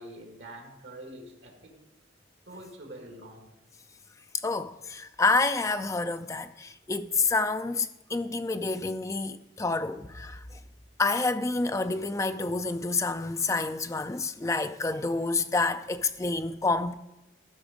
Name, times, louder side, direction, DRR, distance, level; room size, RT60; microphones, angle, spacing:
voice 1, 0.0-1.8 2.5-3.5, right 1 dB, 80° right, 1.9 m, -45 dB
voice 2, 4.3-10.4 11.0-17.0, left 3 dB, 15° left, 0.3 m, -28 dB
13.5 x 6.1 x 5.1 m
head